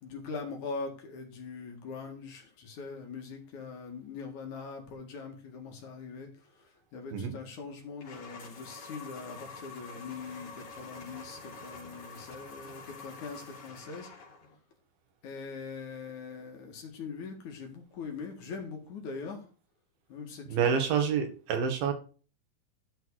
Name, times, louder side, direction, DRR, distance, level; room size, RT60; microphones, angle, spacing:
voice 1, 0.0-14.1 15.2-19.5 20.1-20.7, left 4 dB, 60° left, 3 dB, 3.2 m, -42 dB
sound 1, 8.0-14.6, left 3 dB, 40° left, 3.8 m, -47 dB
voice 2, 20.5-21.9, right 7 dB, 80° right, 5 dB, 3.6 m, -27 dB
12.5 x 6.2 x 4.8 m, 0.38 s
omnidirectional pair, 4.1 m